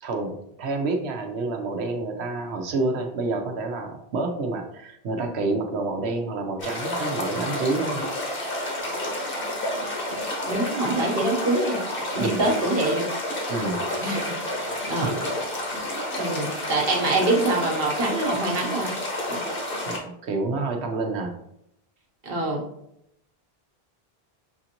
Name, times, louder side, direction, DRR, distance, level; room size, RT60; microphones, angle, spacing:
voice 1, 0.0-8.0 12.2-12.4 13.5-13.9 15.0-15.1 16.1-16.3 19.9-21.4, right 3 dB, 90° right, 4 dB, 1.0 m, -28 dB
sound 1, 6.6-20.0, left 1 dB, 60° left, 1.2 m, -30 dB
voice 2, 10.5-11.8 12.1-13.1 14.0-15.1 16.2-18.9 19.3-19.4 22.2-22.6, right 2 dB, 65° right, 0 dB, 1.1 m, -25 dB
6.4 x 2.6 x 2.8 m, 0.77 s
omnidirectional pair, 1.1 m